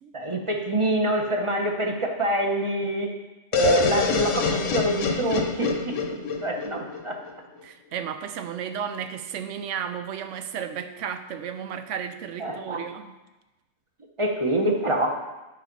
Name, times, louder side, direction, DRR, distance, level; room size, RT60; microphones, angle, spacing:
voice 1, 0.1-3.1 3.5-7.2 12.4-12.8 14.2-15.1, right 1 dB, 30° right, 2 dB, 0.9 m, -26 dB
sound 1, 3.5-7.3, left 5 dB, 85° left, 1.1 m, -26 dB
voice 2, 7.6-13.2, right 8 dB, 80° right, 9 dB, 1.0 m, -33 dB
8.9 x 4.7 x 5.3 m, 1.1 s
omnidirectional pair, 1.3 m